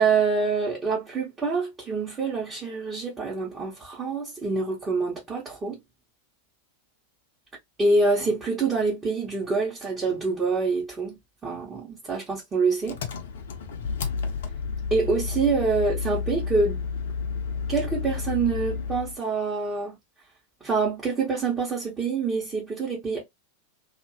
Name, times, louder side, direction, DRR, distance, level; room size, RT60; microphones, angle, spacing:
voice 1, 0.0-5.8 7.8-13.0 14.9-16.8 17.7-20.0 20.6-23.2, right 4 dB, 20° right, 1.2 m, -26 dB
Engine, 12.9-19.2, left 5 dB, 60° left, 0.7 m, -31 dB
2.8 x 2.7 x 2.8 m
figure-of-eight pair, 90°, 0 cm